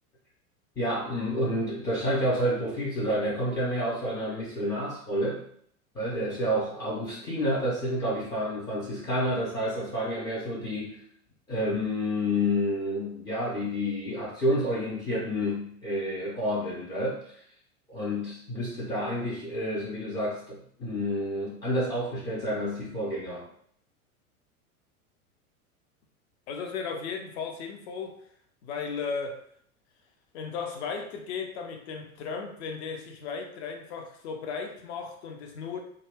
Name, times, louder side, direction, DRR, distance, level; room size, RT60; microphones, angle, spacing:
voice 1, 0.8-5.4 5.9-11.0 11.5-17.3 17.9-23.5, equal, 10° left, -8 dB, 0.4 m, -29 dB
voice 2, 26.5-28.2 28.6-29.5 30.3-35.8, left 5 dB, 50° left, 4 dB, 0.6 m, -35 dB
2.4 x 2.2 x 3.4 m, 0.63 s
figure-of-eight pair, 90°, 44 cm